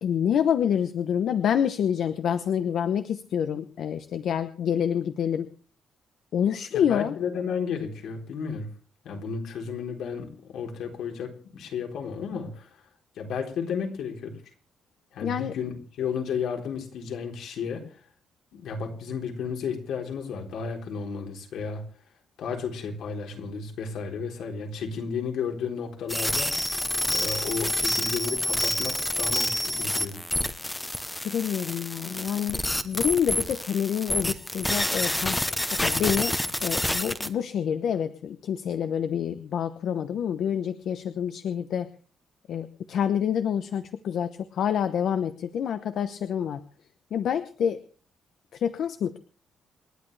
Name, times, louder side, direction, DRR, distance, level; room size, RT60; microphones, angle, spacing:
voice 1, 0.0-5.5 6.3-7.2 15.2-15.5 31.2-35.4 35.7-36.4 36.6-41.9 42.5-46.6 47.1-47.8 48.5-49.2, left 8 dB, 60° left, 10 dB, 0.9 m, -27 dB
voice 2, 6.9-8.7 9.0-12.7 13.2-14.4 15.1-17.8 18.5-21.8 22.4-26.5 27.1-30.2, left 6 dB, 80° left, 2 dB, 3.8 m, -33 dB
sound 1, 26.1-37.3, left 1 dB, 5° left, 0.9 m, -28 dB
28.5 x 11.0 x 3.4 m, 0.40 s
cardioid pair, 180°, 0 cm